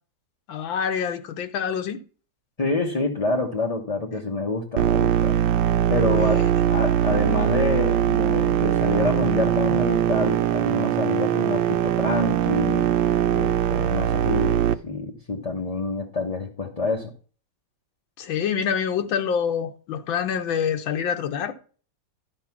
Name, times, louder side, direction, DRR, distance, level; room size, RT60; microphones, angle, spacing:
voice 1, 0.5-2.0 6.1-6.5 18.2-21.5, left 7 dB, 85° left, 1.7 m, -26 dB
voice 2, 2.6-5.4 5.9-12.9 13.3-17.1, left 3 dB, 30° left, 0.7 m, -27 dB
sound 1, 4.8-14.8, right 11 dB, 85° right, 1.4 m, -21 dB
11.5 x 5.2 x 5.9 m
omnidirectional pair, 2.1 m